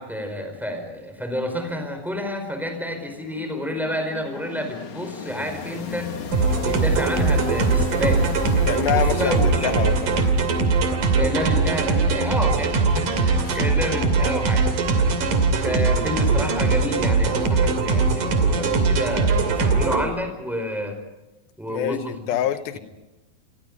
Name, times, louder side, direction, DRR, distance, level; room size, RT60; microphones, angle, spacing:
voice 1, 0.0-6.1 6.6-8.4 8.9-9.9 11.1-14.7 15.5-21.0 21.6-22.3 22.7-22.8, equal, ahead, 5 dB, 4.5 m, -29 dB
sound 1, 2.7-11.4, left 4 dB, 60° left, 3.1 m, -35 dB
sound 2, 6.3-20.0, right 4 dB, 60° right, 4.1 m, -21 dB
voice 2, 8.7-10.3 13.5-13.6 21.7-22.8, left 11 dB, 75° left, 11 dB, 2.9 m, -26 dB
29.5 x 23.0 x 5.3 m, 1.1 s
omnidirectional pair, 4.3 m